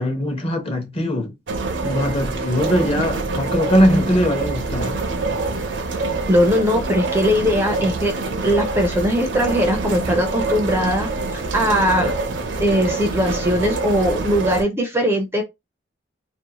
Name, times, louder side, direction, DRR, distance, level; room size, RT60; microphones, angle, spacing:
voice 1, 0.0-1.3 1.8-5.0, equal, 35° left, 0.8 m, -20 dB
sound 1, 1.5-14.6, right 3 dB, 75° right, 0.5 m, -25 dB
voice 2, 6.3-8.1 8.4-12.1 12.6-15.4, equal, 15° right, 0.4 m, -20 dB
2.5 x 2.1 x 2.9 m
head